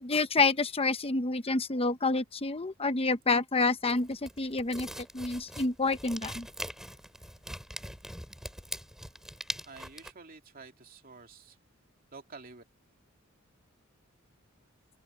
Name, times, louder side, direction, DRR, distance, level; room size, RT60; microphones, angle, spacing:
voice 1, 0.0-4.9 5.1-6.5, left 3 dB, 30° left, 0.9 m, -28 dB
sound 1, 3.8-10.1, equal, ahead, 5.8 m, -42 dB
voice 2, 9.7-11.6 12.1-12.6, right 4 dB, 45° right, 2.6 m, -49 dB
open air
head